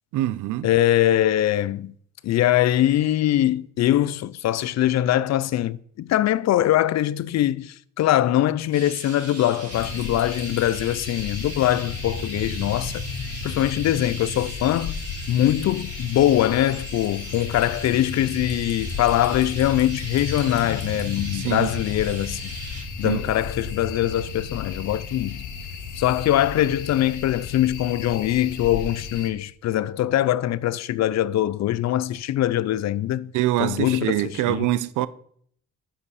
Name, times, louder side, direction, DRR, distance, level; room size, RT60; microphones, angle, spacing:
voice 1, 0.1-0.7 21.3-21.7 23.0-23.3 33.3-35.1, right 14 dB, 80° right, 0.6 m, -24 dB
voice 2, 0.6-1.9 2.2-13.0 13.4-22.5 23.0-25.5 25.9-33.3 33.6-34.7, left 13 dB, 60° left, 0.5 m, -22 dB
Chirp tweet, 8.7-22.8, right 3 dB, 55° right, 4.1 m, -40 dB
sound 1, 9.7-29.3, left 5 dB, 85° left, 1.5 m, -34 dB
10.0 x 7.5 x 4.2 m
cardioid pair, 90°, 30 cm